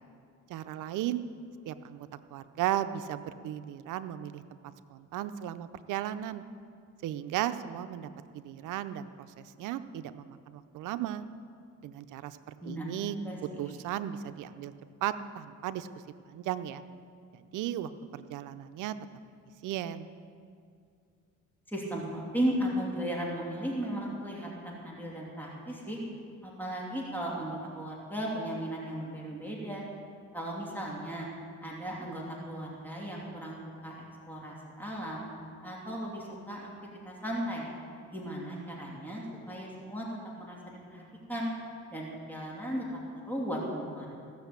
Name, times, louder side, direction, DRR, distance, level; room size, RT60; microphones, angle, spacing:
voice 1, 0.5-1.2 1.7-4.4 4.9-6.4 7.0-11.2 11.8-14.7 15.0-15.9 16.3-16.8 17.3-19.0 19.6-20.1, right 11 dB, 90° right, 12 dB, 0.6 m, -36 dB
voice 2, 21.7-26.0 26.4-29.8 30.3-31.3 31.6-33.6 33.8-35.3 35.6-36.7 37.0-37.7 38.1-40.0 40.4-40.6 40.9-41.0 41.3-41.5 41.9-42.8 43.3-44.1, equal, 5° left, -4 dB, 2.9 m, -36 dB
16.0 x 6.6 x 8.2 m, 2.3 s
cardioid pair, 90°, 30 cm